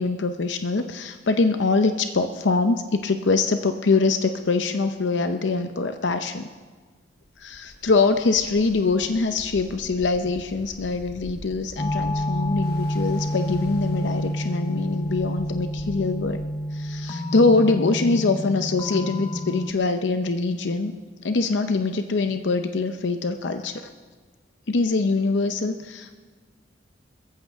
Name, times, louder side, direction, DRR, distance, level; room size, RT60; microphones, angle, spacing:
voice 1, 0.0-6.4 7.4-16.4 16.7-20.9 21.2-23.8 24.7-26.1, left 3 dB, 80° left, 7 dB, 0.7 m, -23 dB
Ocean, 7.2-17.1, left 1 dB, 60° left, 1.2 m, -45 dB
sound 1, 11.8-19.7, equal, 25° left, 0.6 m, -28 dB
21.0 x 14.5 x 3.5 m, 1.5 s
head